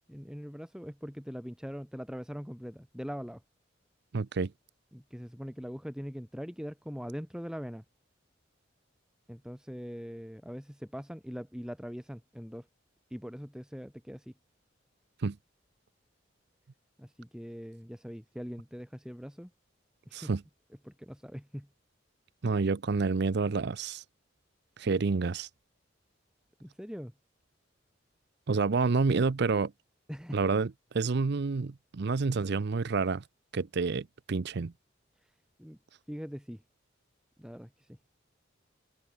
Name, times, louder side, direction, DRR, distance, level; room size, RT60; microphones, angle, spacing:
voice 1, 0.1-3.4 4.9-7.8 9.3-12.7 13.1-14.3 17.0-19.5 20.1-20.3 20.8-21.7 26.6-27.1 30.1-30.4 35.2-35.3 35.6-35.8 36.1-36.6 37.4-38.0, equal, 5° right, 2.8 m, -42 dB
voice 2, 4.1-4.5 15.2-15.4 20.1-20.4 22.4-24.0 24.8-25.5 28.5-29.7 30.3-33.2 33.5-34.7, right 4 dB, 60° right, 0.6 m, -28 dB
head